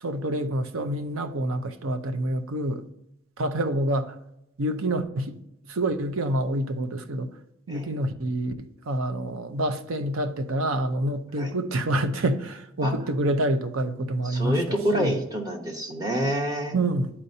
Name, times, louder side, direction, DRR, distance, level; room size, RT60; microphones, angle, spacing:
voice 1, 0.0-2.8 3.4-4.1 4.6-5.4 5.7-7.3 7.7-14.6 14.9-15.2 16.7-17.1, right 1 dB, 75° right, 0.7 m, -27 dB
voice 2, 14.2-16.8, equal, 20° right, 1.0 m, -27 dB
11.5 x 4.3 x 2.7 m
head